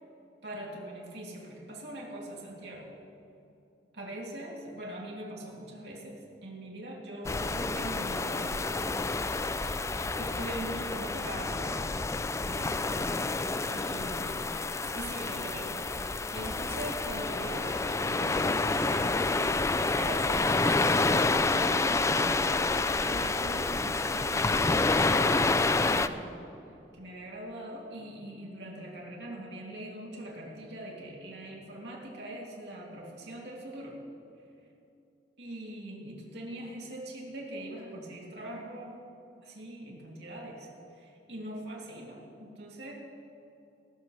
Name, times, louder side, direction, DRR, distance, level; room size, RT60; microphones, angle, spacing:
voice 1, 0.4-2.9 3.9-9.2 10.2-11.9 12.4-13.3 13.6-14.4 14.9-22.3 22.6-26.3 26.9-34.0 35.4-39.0 39.4-42.9, right 1 dB, 70° right, -3 dB, 2.9 m, -42 dB
sound 1, 7.2-26.1, left 3 dB, 15° left, 0.4 m, -28 dB
18.5 x 15.0 x 3.3 m, 2.7 s
head